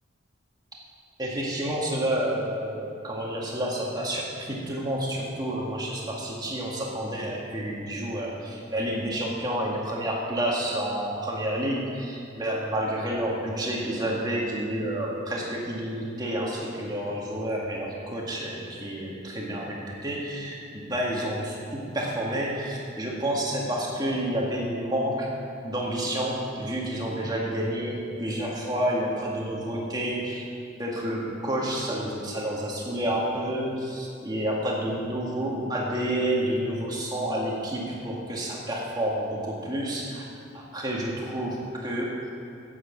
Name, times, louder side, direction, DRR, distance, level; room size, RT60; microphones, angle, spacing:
voice 1, 1.2-25.3 25.6-30.5 30.8-40.2 40.5-42.1, right 1 dB, 20° right, -3 dB, 2.0 m, -29 dB
9.5 x 8.8 x 7.3 m, 2.6 s
head